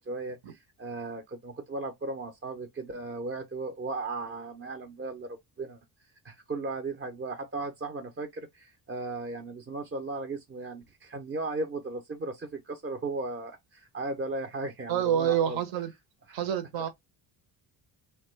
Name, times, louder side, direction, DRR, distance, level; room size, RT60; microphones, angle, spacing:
voice 1, 0.0-5.8 6.2-15.6 16.3-16.4, right 3 dB, 25° right, 0.6 m, -36 dB
voice 2, 14.9-15.9 16.3-16.9, right 9 dB, 70° right, 0.9 m, -27 dB
2.9 x 2.2 x 3.1 m
cardioid pair, 75°, 46 cm